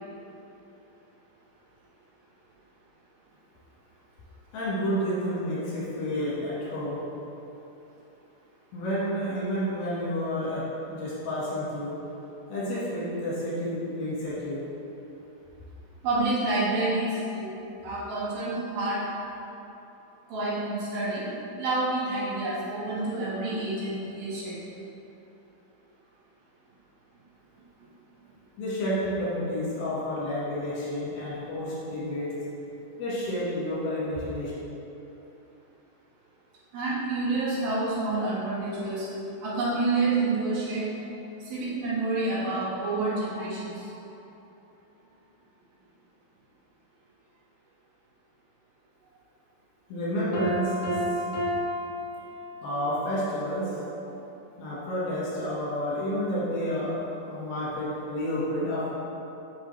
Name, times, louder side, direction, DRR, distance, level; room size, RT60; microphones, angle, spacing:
voice 1, 4.5-7.0 8.7-10.6 10.9-11.9 12.5-14.6 28.6-32.3 33.0-34.5 49.9-51.0 52.6-53.7 54.6-57.0 57.3-58.9, equal, 80° left, -9 dB, 3.5 m, -30 dB
voice 2, 16.0-17.5 17.8-19.0 20.3-21.3 21.6-24.6 36.7-39.1 39.4-40.9 41.5-43.9, right 2 dB, 75° right, -10 dB, 3.5 m, -28 dB
Piano, 50.3-52.9, equal, 60° left, 1.5 m, -31 dB
8.1 x 5.9 x 3.3 m, 3.0 s
omnidirectional pair, 4.2 m